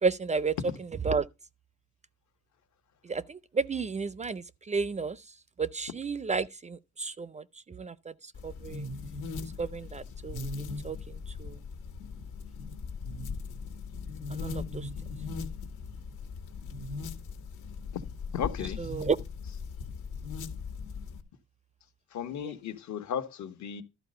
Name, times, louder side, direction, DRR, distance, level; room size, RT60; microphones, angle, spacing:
voice 1, 0.0-1.3 3.0-5.2 5.6-8.1 8.4-8.9 9.6-11.6 14.3-14.9 18.8-19.2 22.4-22.5, right 4 dB, 25° right, 0.4 m, -32 dB
sound 1, 8.4-21.2, left 4 dB, 90° left, 1.7 m, -39 dB
voice 2, 18.3-18.8 22.1-23.8, left 8 dB, 70° left, 1.3 m, -35 dB
12.0 x 4.2 x 6.6 m
cardioid pair, 90°, 30 cm